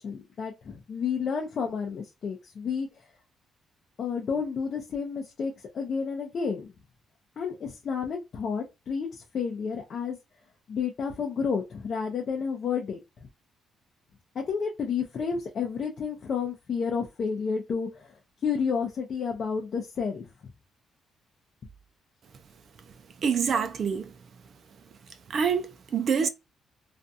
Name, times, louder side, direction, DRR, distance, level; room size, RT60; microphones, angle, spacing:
voice 1, 0.0-2.9 4.0-6.7 7.4-10.2 10.7-13.0 14.3-18.2 18.4-20.2, left 6 dB, 55° left, 0.6 m, -31 dB
voice 2, 23.2-24.1 25.3-26.3, right 6 dB, 55° right, 0.3 m, -26 dB
2.5 x 2.3 x 2.6 m
cardioid pair, 90°, 0 cm